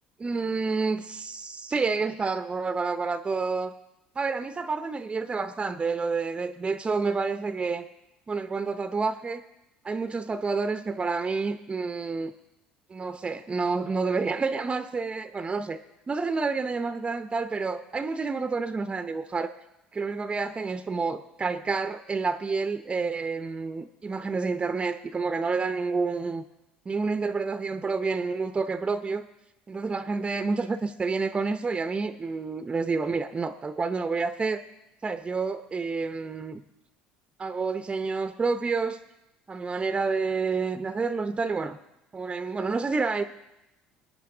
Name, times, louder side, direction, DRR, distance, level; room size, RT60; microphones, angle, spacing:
voice 1, 0.2-3.7 4.2-7.9 8.3-9.4 9.8-12.3 12.9-15.8 16.1-19.5 19.9-26.4 26.9-29.3 29.7-34.6 35.0-36.6 37.4-39.0 39.5-41.8 42.1-43.2, right 4 dB, 25° right, 10 dB, 0.6 m, -29 dB
21.5 x 9.2 x 3.8 m, 0.92 s
hypercardioid pair, 70°, 4 cm